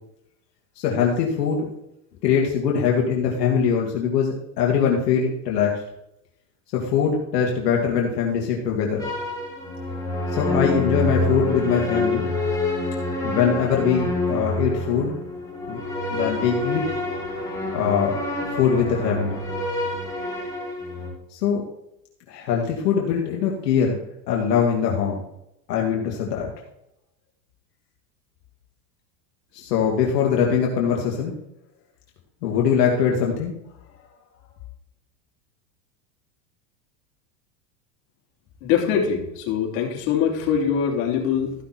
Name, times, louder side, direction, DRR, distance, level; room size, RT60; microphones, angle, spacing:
voice 1, 0.8-1.7 2.2-5.8 6.7-9.1 10.3-12.3 13.2-15.1 15.7-15.8 16.1-16.8 17.7-19.4 21.3-21.6 22.3-24.0 24.3-25.2 25.7-26.5 29.5-31.3 32.4-33.5, left 7 dB, 80° left, -1 dB, 2.3 m, -22 dB
sound 1, 9.0-21.1, left 1 dB, 5° left, 2.8 m, -27 dB
voice 2, 38.6-41.5, left 7 dB, 55° left, -1 dB, 3.4 m, -23 dB
14.0 x 5.9 x 4.2 m, 0.81 s
supercardioid pair, 130°, 47 cm